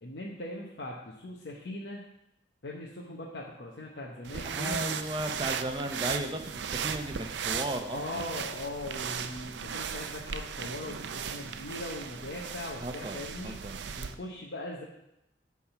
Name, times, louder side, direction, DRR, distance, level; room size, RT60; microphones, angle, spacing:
voice 1, 0.0-2.1 2.6-5.0 7.9-13.6 14.0-14.8, left 1 dB, 80° left, -3 dB, 1.0 m, -40 dB
sound 1, 4.2-14.2, right 7 dB, 85° right, 0.5 m, -37 dB
voice 2, 4.6-8.4 12.8-13.8, right 1 dB, 25° right, 5 dB, 0.7 m, -35 dB
9.8 x 3.6 x 5.8 m, 0.84 s
head